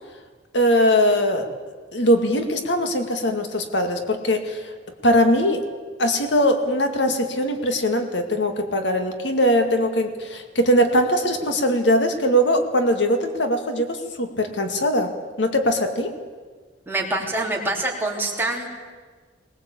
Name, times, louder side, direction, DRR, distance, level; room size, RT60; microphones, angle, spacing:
voice 1, 0.5-1.5 1.9-4.6 5.0-5.6 6.0-15.1 15.4-16.1, equal, 75° left, 6 dB, 2.1 m, -21 dB
voice 2, 16.9-18.7, right 2 dB, 10° right, -2 dB, 3.5 m, -25 dB
20.0 x 20.0 x 8.5 m, 1.5 s
head